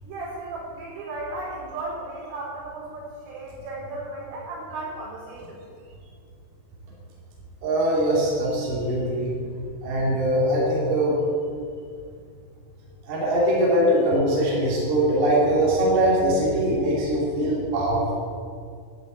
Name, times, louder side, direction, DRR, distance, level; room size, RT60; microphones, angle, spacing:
voice 1, 0.0-5.6, right 2 dB, 85° right, -5 dB, 6.9 m, -35 dB
voice 2, 7.6-9.3 9.8-11.2 13.1-18.1, right 1 dB, 55° right, -6 dB, 4.6 m, -22 dB
12.5 x 6.9 x 9.2 m, 2.3 s
omnidirectional pair, 5.7 m